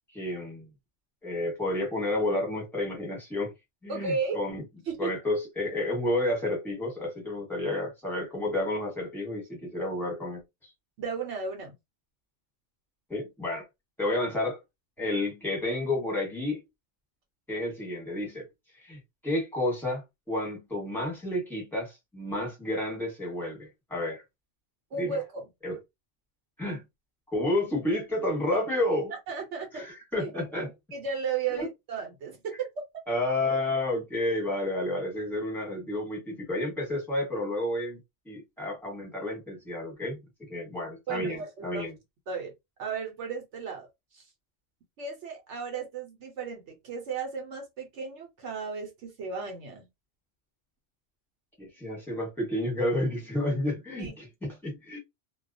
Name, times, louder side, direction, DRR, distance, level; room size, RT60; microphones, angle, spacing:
voice 1, 0.1-0.7 1.2-3.5 3.8-4.6 5.0-10.4 13.1-13.6 14.0-14.6 15.0-16.6 17.5-18.5 18.8-24.2 25.0-25.2 25.6-25.8 26.6-26.8 27.3-29.1 29.7-30.7 31.5-31.7 33.1-40.2 40.5-41.9 51.6-55.0, left 1 dB, ahead, 1.0 m, -30 dB
voice 2, 3.9-4.4 4.9-5.2 11.0-11.7 24.9-25.4 28.5-28.6 29.3-29.8 30.2-30.3 30.9-32.7 41.1-41.8 42.3-42.5 42.8-43.9 44.1-44.2 45.0-49.9 54.0-54.1, right 5 dB, 70° right, 1.0 m, -34 dB
2.2 x 2.2 x 2.5 m
omnidirectional pair, 1.3 m